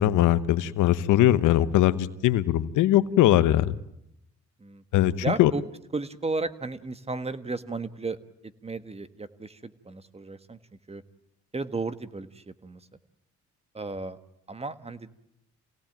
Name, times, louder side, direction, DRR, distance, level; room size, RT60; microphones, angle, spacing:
voice 1, 0.0-3.8 4.9-5.1 5.4-5.5, left 13 dB, 85° left, 14 dB, 1.1 m, -21 dB
voice 2, 5.2-5.6 5.9-10.6 10.9-11.0 11.5-12.9 13.7-14.2 14.5-15.1, right 3 dB, 20° right, 12 dB, 1.4 m, -34 dB
27.5 x 18.0 x 9.2 m, 0.82 s
cardioid pair, 90°, 30 cm